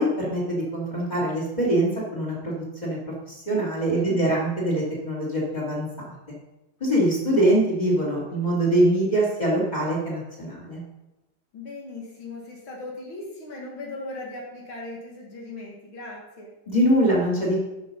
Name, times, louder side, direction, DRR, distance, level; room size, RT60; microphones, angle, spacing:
voice 1, 0.0-3.0 3.3-6.1 6.8-10.8 16.7-17.6, right 1 dB, 20° left, -5 dB, 2.8 m, -23 dB
voice 2, 3.9-4.4 11.5-16.5, left 2 dB, 75° left, -2 dB, 2.8 m, -38 dB
10.5 x 6.1 x 5.4 m, 0.99 s
omnidirectional pair, 2.2 m